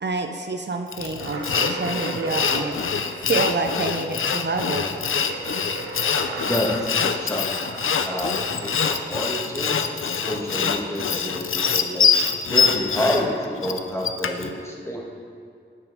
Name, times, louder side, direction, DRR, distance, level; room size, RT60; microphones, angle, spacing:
voice 1, 0.0-2.8 3.2-4.9, right 3 dB, 60° right, 5 dB, 0.5 m, -27 dB
Sawing, 0.9-14.5, left 6 dB, 85° left, 0.4 m, -24 dB
sound 1, 1.2-10.6, right 2 dB, 90° right, 0.8 m, -36 dB
voice 2, 6.5-7.5 8.1-9.7 10.3-11.4 11.7-12.1 12.5-15.0, left 1 dB, 15° left, -2 dB, 1.5 m, -28 dB
9.1 x 5.9 x 3.6 m, 2.3 s
wide cardioid pair, 45°, 21 cm